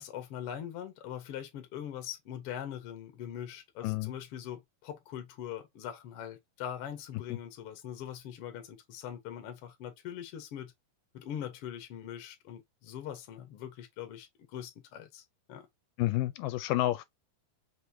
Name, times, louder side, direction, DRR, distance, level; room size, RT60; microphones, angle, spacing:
voice 1, 0.0-10.7 11.1-15.7, left 10 dB, 60° left, 1.6 m, -42 dB
voice 2, 3.8-4.1 7.3-7.4 16.0-17.0, left 16 dB, 80° left, 2.1 m, -30 dB
5.6 x 3.1 x 2.7 m
omnidirectional pair, 3.9 m